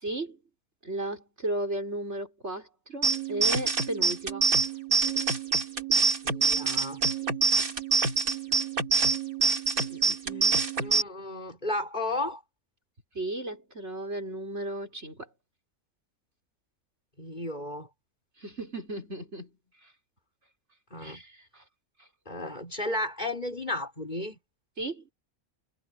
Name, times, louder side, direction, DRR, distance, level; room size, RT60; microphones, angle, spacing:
voice 1, 0.0-0.4 0.8-4.5 9.8-10.6 13.1-15.3 18.4-19.5 21.0-21.6 24.8-25.1, right 1 dB, 50° right, 6.0 m, -35 dB
sound 1, 3.0-11.0, right 4 dB, 85° right, 3.3 m, -26 dB
voice 2, 6.2-7.0 10.8-12.4 17.2-17.9 20.9-21.2 22.3-24.4, left 1 dB, 30° left, 6.0 m, -33 dB
omnidirectional pair, 1.5 m